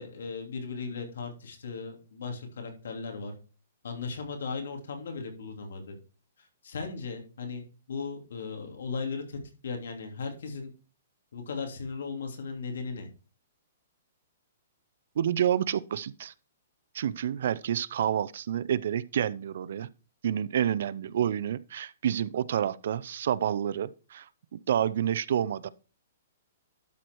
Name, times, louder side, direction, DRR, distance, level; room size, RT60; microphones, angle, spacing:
voice 1, 0.0-3.3 3.8-6.0 6.4-10.7 11.3-13.1, left 4 dB, 80° left, 2.8 m, -37 dB
voice 2, 15.2-16.3 16.9-19.9 20.2-25.7, right 9 dB, 65° right, 0.5 m, -29 dB
12.0 x 4.6 x 4.6 m
hypercardioid pair, 150°, 0 cm